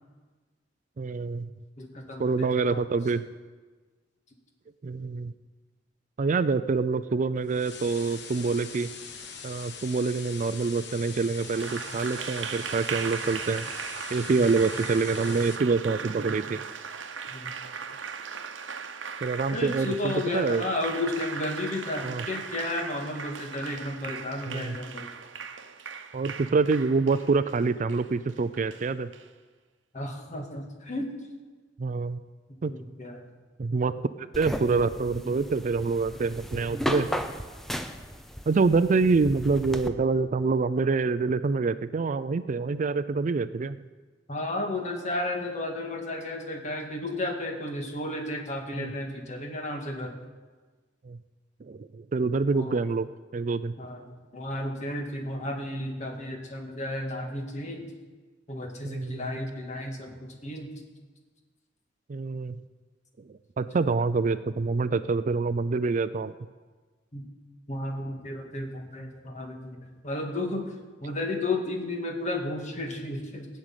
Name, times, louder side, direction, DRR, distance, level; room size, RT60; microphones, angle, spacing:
voice 1, 1.0-1.5 2.2-3.3 4.8-5.3 6.2-8.9 9.4-13.7 14.1-16.6 19.2-20.6 22.0-22.3 24.5-24.8 26.1-29.1 31.8-32.2 32.6-32.7 33.6-37.2 38.5-43.8 48.7-48.9 51.0-51.2 51.6-53.1 53.3-53.8 58.8-59.3 62.1-62.6 63.2-66.3, right 4 dB, 40° right, 14 dB, 0.4 m, -26 dB
voice 2, 1.8-3.0 14.3-14.4 17.3-17.5 19.5-25.1 29.9-31.1 32.5-33.3 44.3-50.2 52.5-52.8 53.8-57.8 58.5-60.7 67.1-67.3 67.7-69.8 70.0-70.7 71.0-73.5, left 1 dB, 40° left, 2 dB, 2.0 m, -33 dB
sound 1, 7.5-15.6, left 6 dB, 65° left, 1.3 m, -42 dB
Applause, 11.4-29.3, right 6 dB, 85° right, 0.9 m, -38 dB
sound 2, 34.3-39.9, equal, ahead, 0.7 m, -35 dB
17.0 x 6.4 x 9.1 m, 1.4 s
head